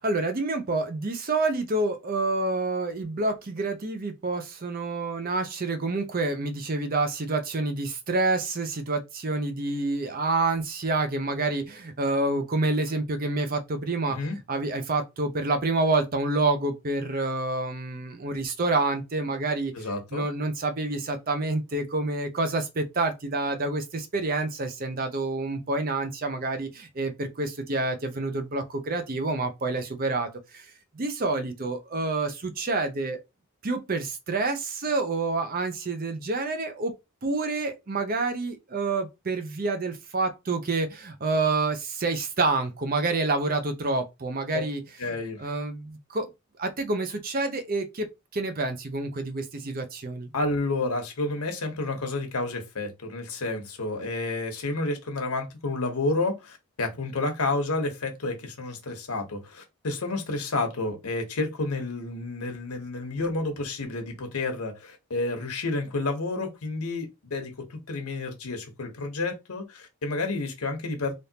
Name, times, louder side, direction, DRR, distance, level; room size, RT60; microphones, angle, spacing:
voice 1, 0.0-14.2 14.5-19.7 20.1-30.7 30.9-33.2 33.6-36.9 37.2-44.8 45.4-46.3 46.6-48.1 48.3-50.3, right 3 dB, 40° right, 0.6 m, -28 dB
voice 2, 14.1-14.4 19.7-20.2 44.5-44.6 45.0-45.4 50.3-71.1, left 2 dB, 85° left, 1.0 m, -30 dB
3.4 x 2.6 x 2.8 m
head